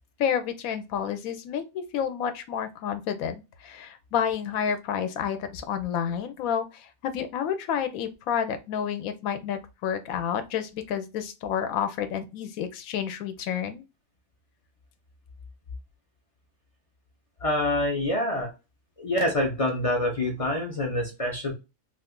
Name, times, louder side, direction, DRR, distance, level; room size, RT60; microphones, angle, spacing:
voice 1, 0.2-3.4 3.6-13.8, left 8 dB, 80° left, 1.0 m, -30 dB
voice 2, 17.4-18.5 19.0-21.5, left 1 dB, 45° left, 0.4 m, -26 dB
2.5 x 2.4 x 3.5 m
omnidirectional pair, 1.5 m